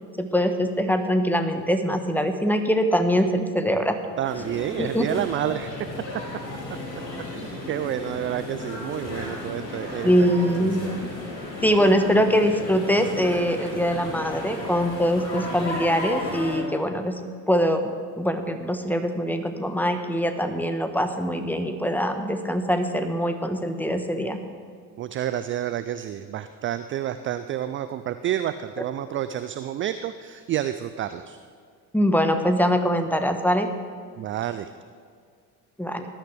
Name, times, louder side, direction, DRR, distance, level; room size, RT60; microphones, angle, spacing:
voice 1, 0.2-4.0 4.8-5.2 10.0-10.8 11.6-17.2 17.5-24.4 31.9-33.7 35.8-36.0, equal, 5° left, 7 dB, 1.2 m, -23 dB
sound 1, 4.2-16.6, left 2 dB, 85° left, 3.4 m, -34 dB
voice 2, 4.2-5.7 7.3-10.1 10.6-11.0 25.0-31.4 34.2-34.7, right 11 dB, 25° right, 11 dB, 0.4 m, -29 dB
19.0 x 11.5 x 3.4 m, 2.1 s
figure-of-eight pair, 60°, 49 cm